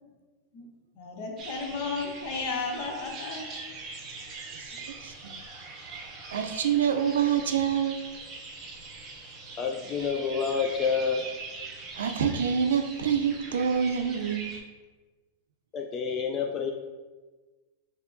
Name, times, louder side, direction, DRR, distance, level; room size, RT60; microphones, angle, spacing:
voice 1, 1.0-3.4, left 4 dB, 55° left, 1 dB, 0.7 m, -33 dB
sound 1, 1.4-14.6, right 3 dB, 35° right, 0.7 m, -42 dB
voice 2, 5.0-5.3 6.3-8.0 11.9-14.5, right 8 dB, 85° right, 6 dB, 0.4 m, -26 dB
voice 3, 9.5-11.3 15.7-16.7, left 6 dB, 30° left, 2 dB, 0.3 m, -28 dB
4.5 x 2.8 x 2.5 m, 1.3 s
hypercardioid pair, 125°, 0 cm